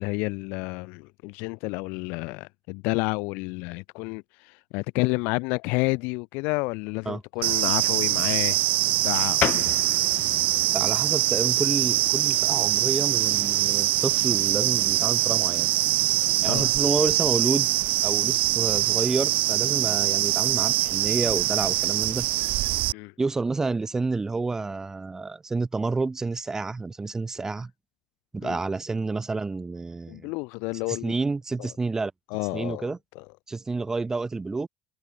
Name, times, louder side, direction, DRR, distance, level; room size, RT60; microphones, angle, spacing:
voice 1, 0.0-8.6 8.9-9.7 16.5-16.7 22.9-23.1 28.4-28.6 30.1-31.1 31.6-31.7 32.3-33.2, left 29 dB, 80° left, 1.2 m, -30 dB
sound 1, 7.4-22.9, right 17 dB, 65° right, 2.5 m, -23 dB
sound 2, 9.4-19.6, left 13 dB, 55° left, 7.9 m, -38 dB
voice 2, 10.7-15.7 16.4-17.7 18.0-22.3 23.2-27.7 28.3-30.3 30.9-32.1 32.5-33.0 33.5-34.7, right 3 dB, 20° right, 3.4 m, -29 dB
supercardioid pair, 95°, 3 cm